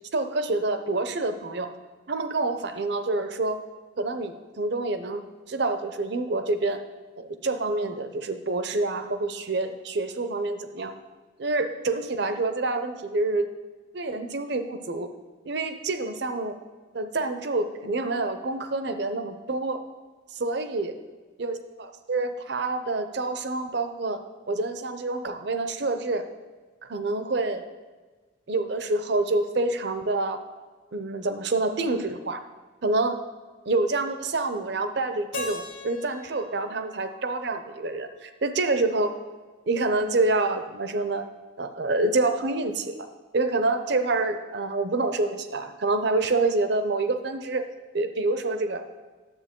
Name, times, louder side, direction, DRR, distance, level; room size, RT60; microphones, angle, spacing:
voice 1, 0.1-1.7 2.1-3.6 4.0-5.2 5.5-6.8 7.2-10.9 11.4-13.5 13.9-15.1 15.4-16.6 16.9-19.8 20.3-20.9 21.4-24.2 24.5-26.2 26.9-27.6 28.5-30.4 30.9-32.4 32.8-33.2 33.7-39.1 39.7-41.2 41.6-42.9 43.3-47.6 47.9-49.1, right 2 dB, 55° right, 9 dB, 0.6 m, -27 dB
Keyboard (musical), 35.3-38.3, left 2 dB, 85° left, 1.0 m, -40 dB
10.5 x 7.8 x 3.7 m, 1.3 s
head